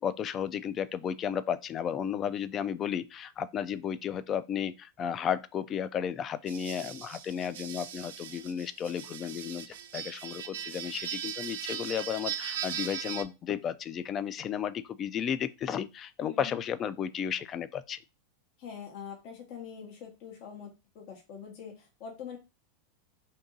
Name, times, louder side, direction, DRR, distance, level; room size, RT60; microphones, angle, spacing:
voice 1, 0.0-18.0, left 8 dB, 35° left, 0.3 m, -33 dB
sound 1, 6.5-13.2, right 9 dB, 80° right, 0.4 m, -39 dB
voice 2, 16.2-16.6 18.6-22.4, left 7 dB, 55° left, 0.8 m, -44 dB
2.8 x 2.6 x 3.6 m
hypercardioid pair, 115°, 0 cm